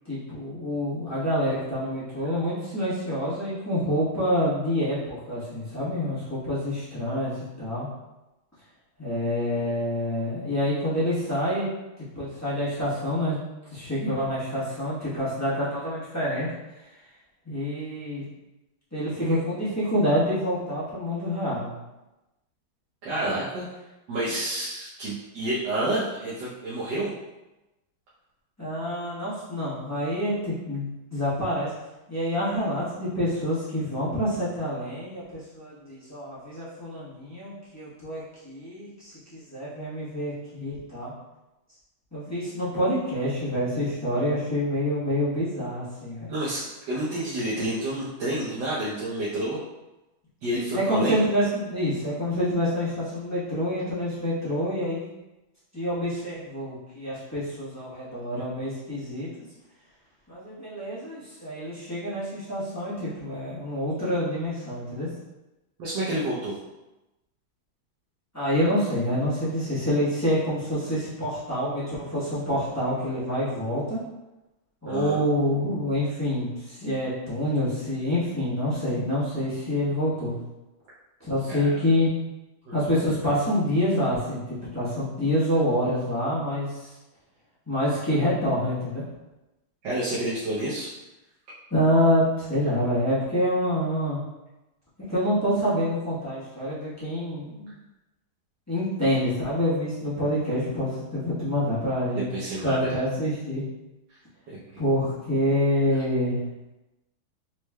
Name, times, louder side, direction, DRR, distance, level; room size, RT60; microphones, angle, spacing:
voice 1, 0.0-7.9 9.0-11.7 12.0-13.4 13.7-16.5 17.4-18.2 18.9-21.7 28.6-31.7 32.1-41.1 42.1-46.3 50.7-55.1 55.7-59.3 60.3-65.1 68.3-74.0 74.8-80.3 81.2-82.1 82.7-86.9 87.7-89.0 91.7-94.2 95.0-97.7 98.7-102.3 102.6-103.6 104.8-106.4, equal, 15° left, -11 dB, 0.7 m, -27 dB
voice 2, 23.0-23.7 24.1-27.1 46.3-49.6 50.4-51.2 65.8-66.6 74.9-75.2 81.5-81.8 82.7-82.8 89.8-90.9 102.1-103.0, right 1 dB, 65° right, -8 dB, 1.3 m, -29 dB
4.2 x 3.2 x 2.2 m, 1.0 s
omnidirectional pair, 2.3 m